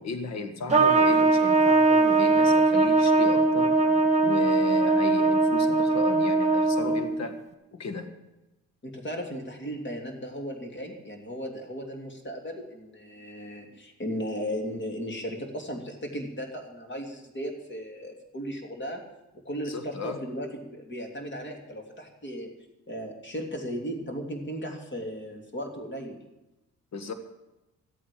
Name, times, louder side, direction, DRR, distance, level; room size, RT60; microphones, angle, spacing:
voice 1, 0.0-3.8 4.2-7.4 7.7-8.1 19.7-20.2 26.9-27.1, left 4 dB, 60° left, 8 dB, 1.8 m, -35 dB
Trumpet, 0.7-7.2, right 3 dB, 25° right, 1.6 m, -21 dB
voice 2, 8.8-19.0 19.4-22.5 22.9-26.2, equal, 40° left, 3 dB, 3.1 m, -36 dB
13.5 x 8.7 x 8.6 m, 0.98 s
cardioid pair, 90°, 30 cm